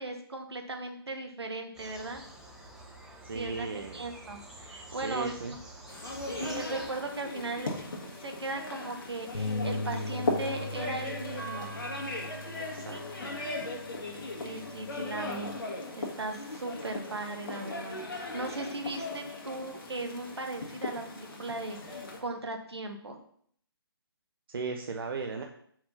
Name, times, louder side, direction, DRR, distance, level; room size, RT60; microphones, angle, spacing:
voice 1, 0.0-2.2 3.3-5.6 6.3-7.7 8.0-11.7 12.9-13.0 14.4-15.5 16.0-23.2, right 2 dB, 80° right, 5 dB, 1.1 m, -38 dB
sound 1, 1.7-6.9, right 1 dB, 5° right, 0.9 m, -48 dB
voice 2, 3.2-4.0 5.0-5.5 12.6-13.3 24.5-25.4, right 4 dB, 60° right, 3 dB, 0.6 m, -37 dB
sound 2, 5.9-22.2, left 2 dB, 55° left, 1.4 m, -38 dB
sound 3, 9.3-15.6, left 2 dB, 85° left, 1.2 m, -39 dB
4.8 x 3.7 x 5.5 m, 0.63 s
figure-of-eight pair, 140°, 13 cm